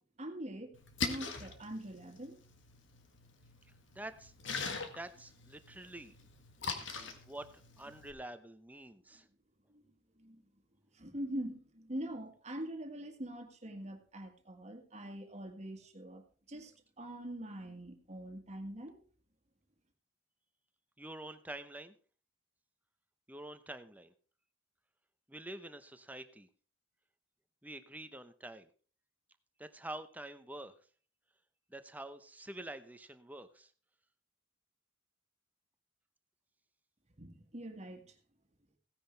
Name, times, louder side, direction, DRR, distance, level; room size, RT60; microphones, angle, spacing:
voice 1, 0.2-2.4 6.6-7.1 10.2-10.4 11.0-16.2 16.5-16.7 17.0-19.0 37.2-38.0, right 1 dB, 35° right, 1.9 m, -44 dB
Splash splatter, 0.7-8.1, left 4 dB, 70° left, 1.7 m, -43 dB
voice 2, 3.9-4.3 4.9-6.1 7.2-7.5 7.8-9.3 21.0-22.0 23.3-24.1 25.3-26.5 27.6-28.7 29.6-30.7 31.7-33.7, right 1 dB, 10° right, 0.8 m, -47 dB
16.5 x 10.0 x 3.4 m
head